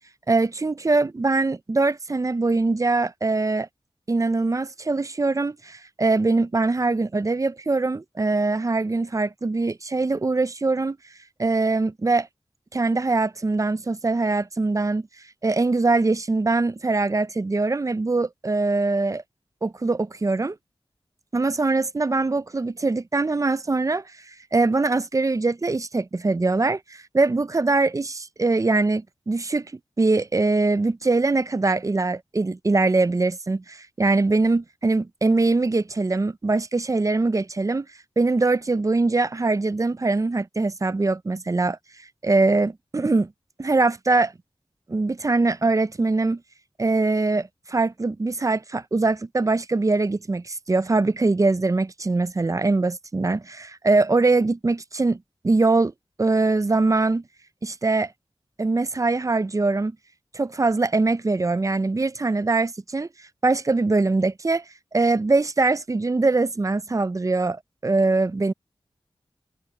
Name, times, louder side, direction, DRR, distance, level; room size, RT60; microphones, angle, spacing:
voice 1, 0.3-3.7 4.1-11.0 11.4-12.3 12.7-15.1 15.4-19.2 19.6-20.6 21.3-29.7 30.0-37.9 38.2-41.8 42.2-43.3 43.6-44.3 44.9-46.4 46.8-55.2 55.4-55.9 56.2-57.2 57.6-58.1 58.6-59.9 60.3-63.1 63.4-64.6 64.9-68.5, right 3 dB, 35° right, 0.5 m, -22 dB
wide cardioid pair, 70°, 10 cm